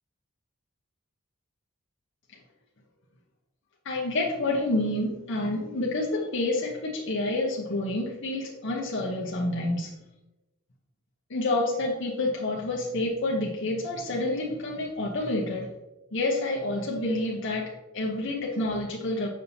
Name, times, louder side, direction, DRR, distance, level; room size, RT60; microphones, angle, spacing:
voice 1, 3.8-9.9 11.3-15.7 16.1-19.3, left 2 dB, 60° left, -3 dB, 0.9 m, -28 dB
7.6 x 5.4 x 2.8 m, 1.0 s
head